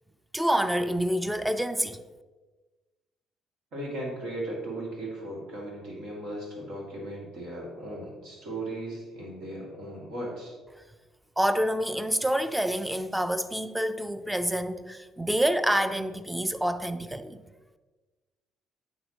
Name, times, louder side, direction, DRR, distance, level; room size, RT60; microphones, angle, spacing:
voice 1, 0.3-2.0 11.4-17.4, equal, 5° right, 0.6 m, -27 dB
voice 2, 3.7-10.5, right 1 dB, 70° right, 2.5 m, -37 dB
9.2 x 6.4 x 3.0 m
hypercardioid pair, 50°, 0 cm